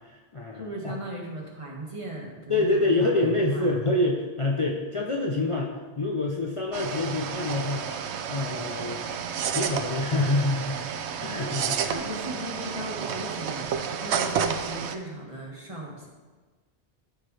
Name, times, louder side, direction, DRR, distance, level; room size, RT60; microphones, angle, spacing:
voice 1, 0.0-1.0 2.5-5.7 6.0-7.9 8.3-9.0 9.5-10.8 11.2-11.6, left 2 dB, 35° left, -1 dB, 0.7 m, -26 dB
voice 2, 0.5-3.7 11.3-16.1, right 1 dB, 30° right, -3 dB, 1.8 m, -37 dB
sound 1, 6.7-14.9, right 7 dB, 90° right, 0.9 m, -31 dB
13.5 x 5.9 x 3.3 m, 1.4 s
omnidirectional pair, 1.1 m